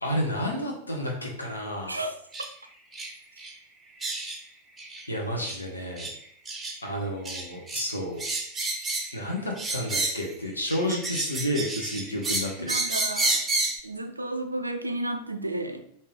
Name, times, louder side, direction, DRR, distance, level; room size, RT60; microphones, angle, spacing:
voice 1, 0.0-2.0 5.1-6.1 6.8-8.2 9.1-12.7, equal, 80° left, 0 dB, 0.8 m, -31 dB
sound 1, 2.3-2.5 2.9-3.1 3.4-3.5 4.0-4.4 4.8-5.0 5.4-5.6 6.0-6.1 6.5-6.8 7.3-7.9 8.2-9.2 9.6-10.3 10.7-13.8, right 2 dB, 15° right, 0.7 m, -30 dB
voice 2, 12.6-13.4 13.8-15.8, right 1 dB, 85° right, 7 dB, 0.4 m, -32 dB
3.6 x 2.7 x 3.3 m, 0.67 s
figure-of-eight pair, 90°, 0 cm